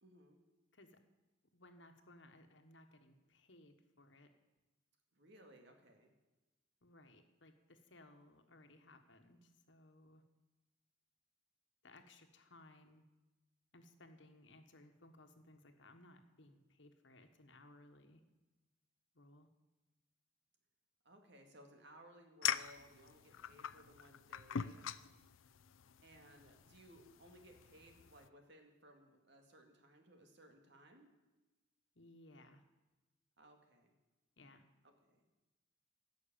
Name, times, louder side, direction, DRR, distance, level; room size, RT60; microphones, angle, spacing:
voice 1, 0.0-0.4 5.1-6.1 21.0-24.9 26.0-31.1 33.4-33.9 34.8-35.2, right 1 dB, 60° right, 4 dB, 2.3 m, -62 dB
voice 2, 1.5-4.3 6.8-10.2 11.8-13.0 13.7-18.2 19.1-19.5 31.9-32.6 34.4-34.7, left 1 dB, 65° left, 6 dB, 1.4 m, -62 dB
sound 1, 22.4-28.3, left 9 dB, 85° left, 0.5 m, -44 dB
17.0 x 6.5 x 8.8 m, 1.1 s
head